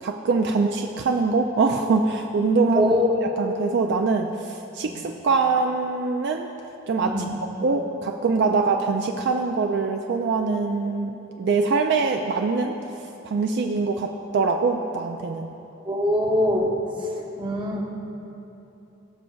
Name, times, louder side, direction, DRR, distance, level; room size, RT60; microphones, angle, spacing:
voice 1, 0.0-2.9 3.4-6.5 6.9-7.1 7.6-12.7 13.2-15.5, right 4 dB, 55° right, 3 dB, 0.4 m, -23 dB
voice 2, 2.7-3.1 4.8-5.0 7.0-7.3 15.8-16.8 17.4-17.8, left 1 dB, 25° right, -1 dB, 0.9 m, -22 dB
18.0 x 6.3 x 2.3 m, 2.9 s
head